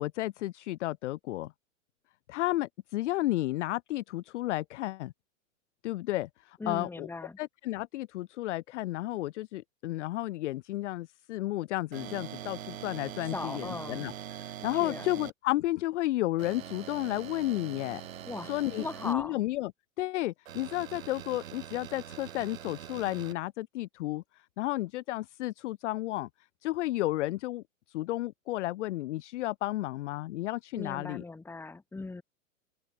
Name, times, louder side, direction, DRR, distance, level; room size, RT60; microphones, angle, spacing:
voice 1, 0.0-1.5 2.3-5.1 5.8-7.1 7.4-14.1 14.4-18.0 18.5-19.7 20.0-24.2 24.6-26.3 26.6-31.2, left 16 dB, 60° left, 0.7 m, -32 dB
voice 2, 6.6-7.4 13.2-14.1 14.8-15.1 18.3-19.4 30.8-32.2, left 3 dB, 5° left, 2.0 m, -39 dB
sound 1, 11.9-15.3 16.4-19.1 20.5-23.3, right 10 dB, 80° right, 6.1 m, -43 dB
open air
hypercardioid pair, 145°, 40 cm